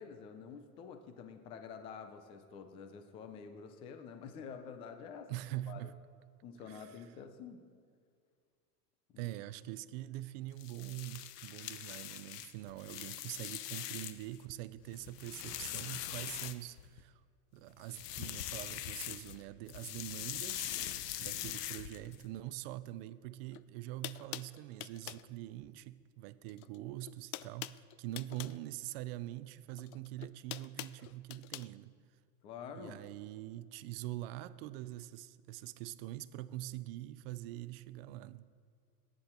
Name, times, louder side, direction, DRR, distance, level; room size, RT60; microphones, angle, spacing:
voice 1, 0.0-5.3 5.7-5.8 6.4-7.6 9.1-9.3 32.4-33.0, left 6 dB, 15° left, 0.3 m, -48 dB
voice 2, 5.3-6.0 6.7-7.0 9.2-17.2 17.5-31.9 32.7-38.5, right 15 dB, 40° right, 0.5 m, -44 dB
sound 1, 10.5-14.4 14.8-17.0 17.8-19.4 19.7-22.2, left 12 dB, 85° left, 1.0 m, -42 dB
sound 2, 23.5-23.6 24.0-25.3 26.5-26.8 27.0-28.6 29.8-31.7, left 16 dB, 65° left, 0.6 m, -45 dB
21.5 x 9.9 x 4.4 m
supercardioid pair, 155°, 47 cm